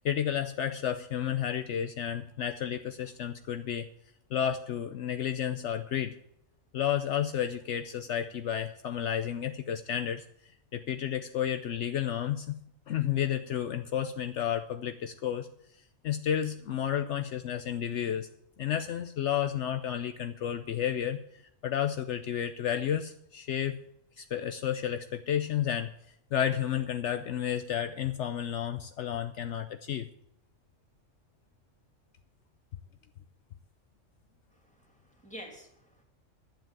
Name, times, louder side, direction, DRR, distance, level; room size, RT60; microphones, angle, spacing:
voice 1, 0.0-3.9 4.3-6.2 6.7-10.2 10.7-12.6 12.9-15.5 16.0-18.3 18.6-23.8 24.2-25.9 26.3-30.1, left 9 dB, 70° left, 8 dB, 0.9 m, -31 dB
voice 2, 34.5-36.0, equal, 5° left, 1 dB, 2.6 m, -49 dB
11.5 x 7.8 x 7.5 m, 0.75 s
omnidirectional pair, 1.3 m